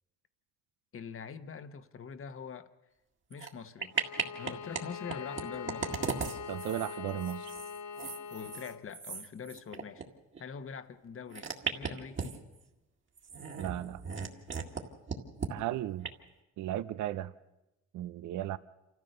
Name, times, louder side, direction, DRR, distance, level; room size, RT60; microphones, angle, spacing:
voice 1, 0.9-2.7 3.3-4.0 4.3-6.1 8.3-10.0 10.4-12.4, left 6 dB, 45° left, 11 dB, 1.2 m, -44 dB
sound 1, 3.3-3.5 3.8-4.8 5.1-10.1 10.3-10.4 11.3-12.6 13.2-14.8 15.1-15.5 16.0-16.1, right 5 dB, 40° right, 2.1 m, -37 dB
Bowed string instrument, 3.9-8.9, left 6 dB, 70° left, 0.8 m, -43 dB
voice 2, 6.5-7.5 13.6-14.0 15.5-16.1 16.6-17.3 17.9-18.6, right 13 dB, 75° right, 15 dB, 0.6 m, -35 dB
27.0 x 14.5 x 6.7 m, 0.99 s
cardioid pair, 90°, 30 cm